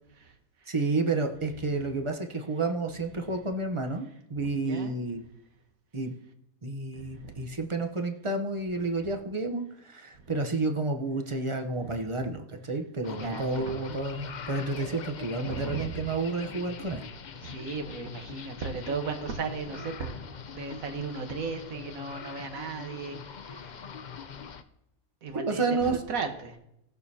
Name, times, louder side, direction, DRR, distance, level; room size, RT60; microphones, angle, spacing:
voice 1, 0.1-0.7 3.1-3.5 4.5-4.9 6.9-7.6 10.1-10.3 11.7-12.1 13.1-13.9 15.4-16.1 16.8-17.0 17.4-20.2 20.5-23.9 25.2-26.6, right 4 dB, 70° right, 5 dB, 1.6 m, -37 dB
voice 2, 0.7-5.2 5.9-6.1 6.6-17.1 25.4-25.9, right 3 dB, 30° right, 4 dB, 0.7 m, -30 dB
sound 1, 13.0-24.6, left 6 dB, 55° left, 0.5 m, -43 dB
18.5 x 6.7 x 2.8 m, 0.80 s
omnidirectional pair, 1.5 m